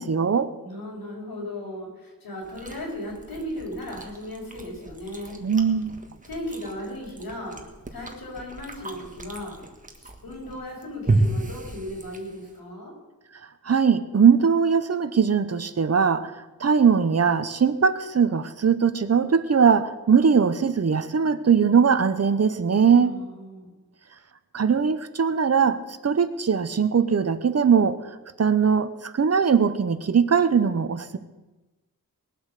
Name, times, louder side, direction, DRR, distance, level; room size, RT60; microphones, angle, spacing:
voice 1, 0.0-0.5 5.4-6.0 13.7-16.3 16.6-23.1 24.5-28.0 28.4-31.2, right 6 dB, 45° right, 12 dB, 0.8 m, -20 dB
voice 2, 0.6-5.4 6.3-7.6 7.9-9.6 10.2-12.9 22.9-23.8, left 1 dB, 90° left, -2 dB, 5.2 m, -36 dB
Chewing mastication, 2.4-12.6, right 2 dB, 20° right, 1.5 m, -32 dB
20.0 x 7.9 x 6.6 m, 1.1 s
wide cardioid pair, 140°, 35 cm